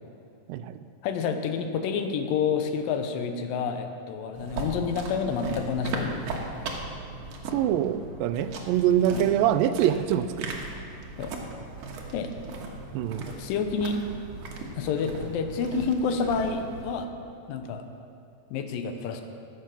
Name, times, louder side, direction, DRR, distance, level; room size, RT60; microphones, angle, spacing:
voice 1, 1.0-6.1 9.0-9.3 11.2-11.3 12.1-12.3 13.4-14.0 14.7-17.1 17.5-17.8 18.5-19.2, left 5 dB, 85° left, 6 dB, 2.5 m, -29 dB
sound 1, 4.3-16.9, right 3 dB, 60° right, 2.1 m, -38 dB
voice 2, 7.5-10.5 12.9-13.3, right 10 dB, 90° right, 11 dB, 2.3 m, -24 dB
14.0 x 8.0 x 6.0 m, 2.5 s
omnidirectional pair, 3.9 m